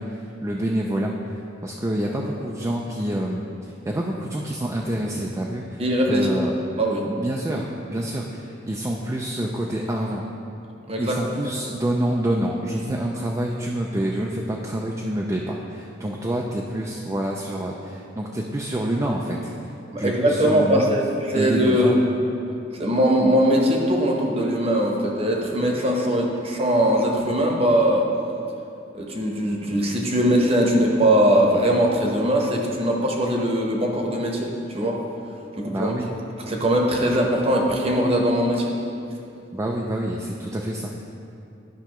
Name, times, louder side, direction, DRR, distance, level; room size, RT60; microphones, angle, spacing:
voice 1, 0.0-1.3 1.6-3.4 3.9-5.8 6.1-6.6 7.1-10.2 11.0-19.7 20.0-20.9 21.3-22.0 35.7-36.1 39.5-41.0, right 1 dB, 15° right, -2 dB, 0.4 m, -27 dB
voice 2, 5.8-6.3 6.8-7.1 10.9-11.2 19.9-22.0 22.7-28.1 28.9-35.0 35.6-35.9 36.5-38.8, equal, 30° right, 0 dB, 0.9 m, -21 dB
11.5 x 5.6 x 3.0 m, 2.7 s
head